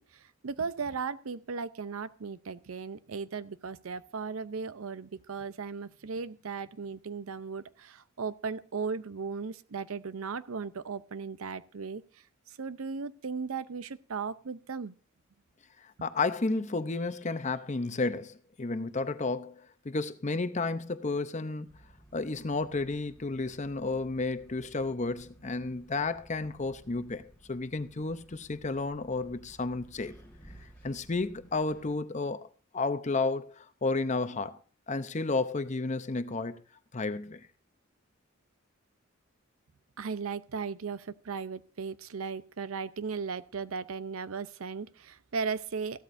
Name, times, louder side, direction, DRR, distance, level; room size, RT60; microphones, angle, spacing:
voice 1, 0.0-12.0 12.5-14.9 40.0-46.0, right 5 dB, 85° right, 0.6 m, -36 dB
voice 2, 16.0-19.5 19.8-21.7 22.1-30.1 30.8-32.5 32.7-34.6 34.9-36.6 36.9-37.4, left 3 dB, 35° left, 0.7 m, -32 dB
sound 1, 21.7-32.0, right 1 dB, 10° left, 3.8 m, -56 dB
15.5 x 12.5 x 2.6 m
head